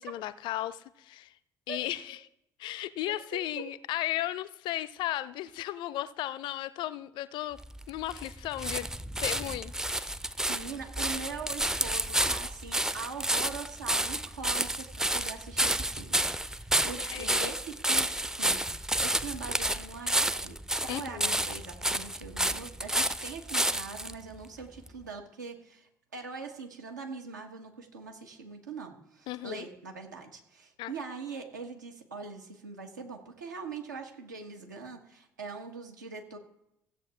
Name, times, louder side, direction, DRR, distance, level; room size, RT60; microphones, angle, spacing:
voice 1, 0.0-1.3 1.7-2.2 2.6-7.6 7.9-8.9 9.2-10.1 17.1-17.5 20.9-21.4 29.3-29.7 30.8-30.9, left 14 dB, 55° left, 0.5 m, -35 dB
voice 2, 3.3-3.6 10.5-36.4, right 4 dB, 80° right, 1.4 m, -42 dB
sound 1, 7.6-24.1 24.9-25.0, right 1 dB, 5° right, 0.5 m, -30 dB
16.0 x 7.7 x 3.5 m
figure-of-eight pair, 50°, 10 cm